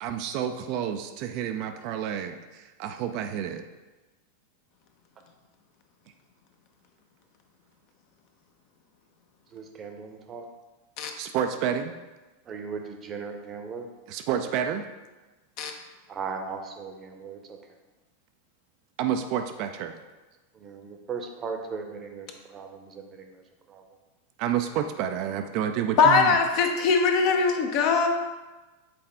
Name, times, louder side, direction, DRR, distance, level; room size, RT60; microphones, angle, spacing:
voice 1, 0.0-3.6 11.2-11.9 14.1-14.8 19.0-20.0 24.4-26.3, right 9 dB, 45° right, 6 dB, 0.4 m, -29 dB
voice 2, 9.5-10.4 12.5-13.9 16.1-17.4 20.6-22.3 22.5-23.4 23.7-23.8, right 5 dB, 25° right, 4 dB, 0.8 m, -37 dB
voice 3, 26.0-28.1, left 5 dB, 45° left, 4 dB, 0.7 m, -21 dB
7.6 x 4.2 x 3.4 m, 1.2 s
figure-of-eight pair, 90°, 0 cm